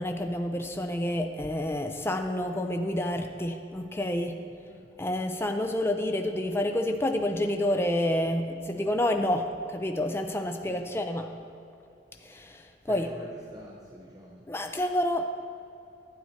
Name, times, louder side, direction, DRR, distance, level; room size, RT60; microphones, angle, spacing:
voice 1, 0.0-4.4 5.0-11.3 12.2-13.1 14.5-15.2, left 1 dB, 15° left, 5 dB, 0.5 m, -29 dB
voice 2, 12.9-14.4, equal, 20° right, -3 dB, 0.8 m, -46 dB
12.0 x 9.6 x 4.3 m, 2.7 s
head